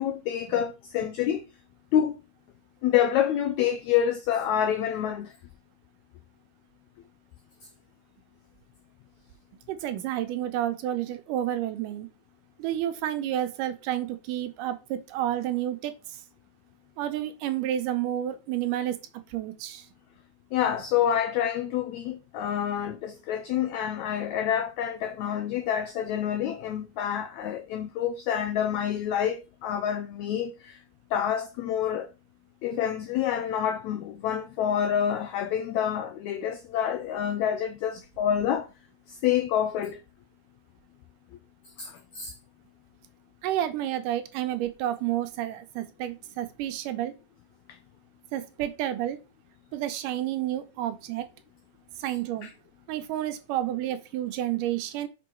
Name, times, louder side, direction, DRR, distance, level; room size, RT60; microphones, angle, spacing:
voice 1, 0.0-1.4 1.9-2.2 2.8-5.3 20.5-30.8 31.1-32.1 32.6-38.7 39.1-40.0 41.8-42.3 52.4-52.5, left 9 dB, 85° left, 1.6 m, -27 dB
voice 2, 9.7-12.1 12.6-16.2 17.0-19.0 19.3-19.9 43.4-47.1 48.3-49.2 49.7-51.3 52.0-52.5 52.9-55.1, right 12 dB, 80° right, 2.1 m, -30 dB
6.2 x 4.5 x 4.4 m
omnidirectional pair, 4.0 m